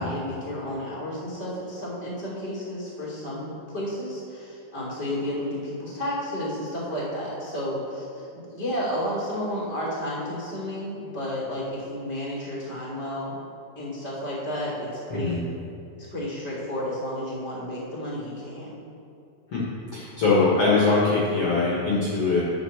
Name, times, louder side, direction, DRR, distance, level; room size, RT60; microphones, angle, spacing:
voice 1, 0.0-13.3 13.7-15.4 16.0-18.8, equal, 20° right, -5 dB, 1.4 m, -32 dB
voice 2, 19.9-22.4, left 3 dB, 55° left, -6 dB, 1.7 m, -22 dB
9.8 x 5.6 x 7.0 m, 2.6 s
omnidirectional pair, 4.6 m